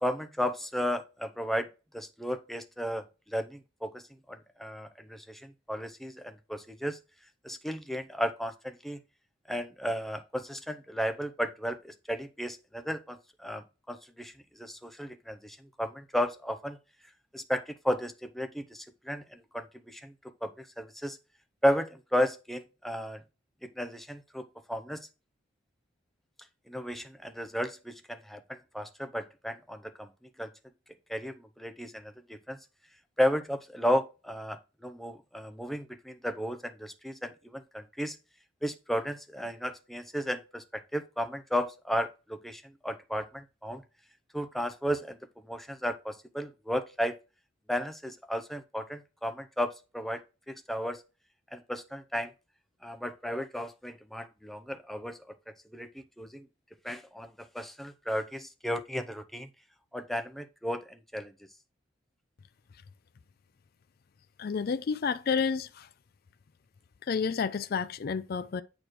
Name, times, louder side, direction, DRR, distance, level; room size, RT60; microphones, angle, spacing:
voice 1, 0.0-1.7 1.9-7.0 7.4-9.0 9.5-16.8 17.3-20.1 20.4-21.2 21.6-23.2 23.6-25.1 26.7-30.1 30.4-30.5 31.1-32.6 33.2-38.2 38.6-43.8 44.3-47.2 47.7-50.2 50.5-51.0 51.5-52.3 52.8-55.2 55.7-56.5 56.8-59.5 59.9-61.3, equal, ahead, 0.6 m, -34 dB
voice 2, 64.4-65.9 67.1-68.6, left 5 dB, 45° left, 0.3 m, -30 dB
8.7 x 3.2 x 6.1 m
head